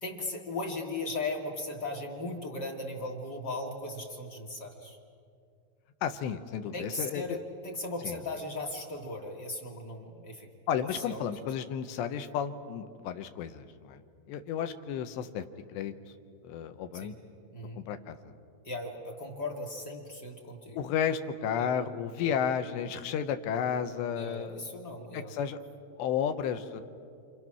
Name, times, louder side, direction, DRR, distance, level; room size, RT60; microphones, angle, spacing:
voice 1, 0.0-5.0 6.7-10.5 10.8-11.2 16.9-17.1 17.5-17.8 18.6-20.8 21.5-21.7 22.2-22.4 24.1-25.3, left 2 dB, 40° left, 1 dB, 1.6 m, -37 dB
voice 2, 6.0-7.4 8.0-8.2 10.7-14.0 14.3-15.4 15.7-15.9 16.4-17.1 17.8-18.3 20.8-24.6 25.1-25.6 26.0-26.8, left 8 dB, 85° left, 8 dB, 3.1 m, -32 dB
28.5 x 28.5 x 6.1 m, 2.4 s
omnidirectional pair, 5.1 m